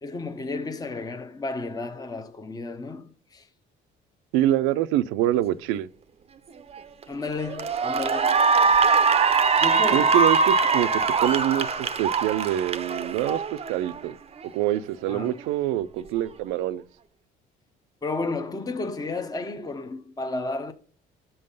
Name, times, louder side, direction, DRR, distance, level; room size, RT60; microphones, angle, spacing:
voice 1, 0.0-3.4 7.1-8.6 9.6-10.1 15.1-15.3 18.0-20.7, left 3 dB, 20° left, 0.8 m, -32 dB
voice 2, 4.3-5.9 9.9-14.2 14.5-16.8, right 13 dB, 85° right, 0.5 m, -25 dB
Cheering / Applause, 6.8-7.0 7.5-14.0, right 5 dB, 30° right, 0.6 m, -22 dB
6.4 x 5.5 x 5.4 m
supercardioid pair, 80°, 20 cm